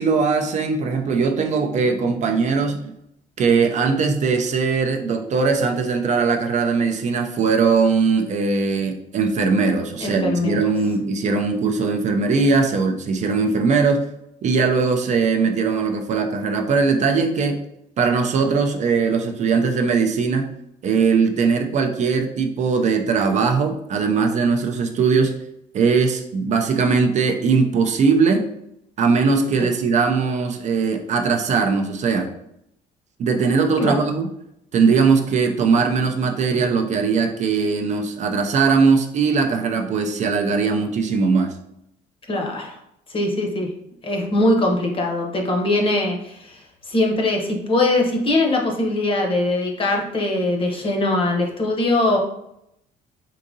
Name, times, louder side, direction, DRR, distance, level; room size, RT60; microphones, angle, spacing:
voice 1, 0.0-2.9 3.4-14.1 14.4-17.6 18.0-20.5 20.8-25.3 25.7-28.4 29.0-32.3 33.2-34.3 34.7-41.5, right 5 dB, 45° right, 5 dB, 0.4 m, -20 dB
voice 2, 10.0-10.6 29.6-29.7 33.8-34.0 42.3-42.8 43.1-43.7 44.0-46.6 46.9-52.2, left 2 dB, 30° left, 1 dB, 0.8 m, -21 dB
3.7 x 2.7 x 2.6 m, 0.78 s
cardioid pair, 110°, 17 cm